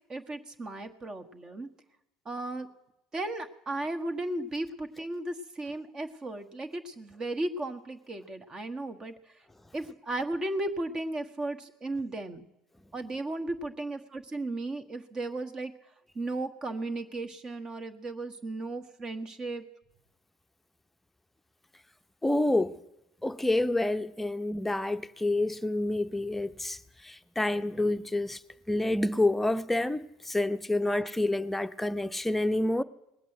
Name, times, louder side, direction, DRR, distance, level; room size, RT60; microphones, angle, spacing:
voice 1, 0.1-1.7 2.2-2.7 3.1-9.1 9.7-12.4 12.9-15.7 16.1-19.6 30.9-31.0, right 2 dB, 35° right, 1.5 m, -35 dB
voice 2, 22.2-22.8 23.2-26.8 27.0-28.4 28.7-32.8, left 1 dB, 10° left, 0.7 m, -28 dB
19.5 x 8.2 x 9.2 m
hypercardioid pair, 70°, 2 cm